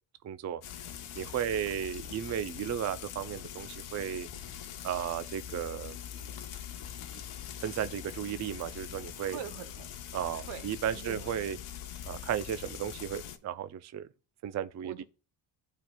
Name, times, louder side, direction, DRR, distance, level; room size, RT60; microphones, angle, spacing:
voice 1, 0.2-0.6 1.1-4.3 4.8-6.0 7.1-7.2 7.6-9.4 10.1-11.6 12.1-14.1 14.4-15.0, right 9 dB, 35° right, 0.4 m, -34 dB
Frying (food), 0.6-13.4, left 10 dB, 80° left, 0.9 m, -43 dB
voice 2, 9.2-10.0 10.4-11.3 14.8-15.0, right 9 dB, 80° right, 1.0 m, -44 dB
12.0 x 4.3 x 2.2 m
cardioid pair, 95°, 50 cm